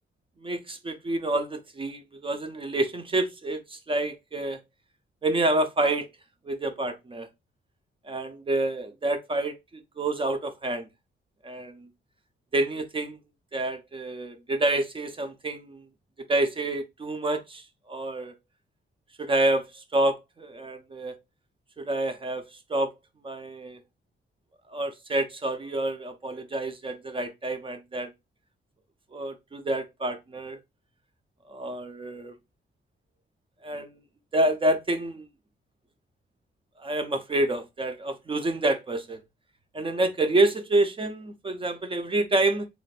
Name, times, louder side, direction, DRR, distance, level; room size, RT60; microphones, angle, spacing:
voice 1, 0.4-4.6 5.2-6.1 6.4-7.3 8.1-10.9 11.4-11.9 12.5-13.2 13.5-15.8 16.3-18.3 19.2-21.2 21.8-22.4 22.7-22.9 23.2-23.8 24.7-28.1 29.1-30.6 31.5-32.3 33.6-34.0 34.3-35.3 36.8-39.2 39.7-42.7, right 2 dB, 25° right, 0.4 m, -28 dB
3.2 x 2.5 x 3.9 m
wide cardioid pair, 160°, 21 cm